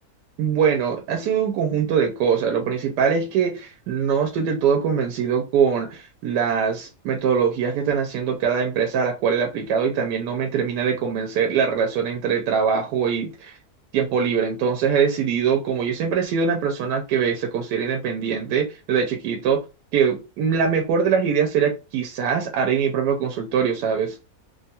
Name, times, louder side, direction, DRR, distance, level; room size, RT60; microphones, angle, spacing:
voice 1, 0.4-13.6 13.9-19.6 19.9-24.2, right 6 dB, 90° right, 1.2 m, -22 dB
3.2 x 2.3 x 2.7 m
omnidirectional pair, 1.7 m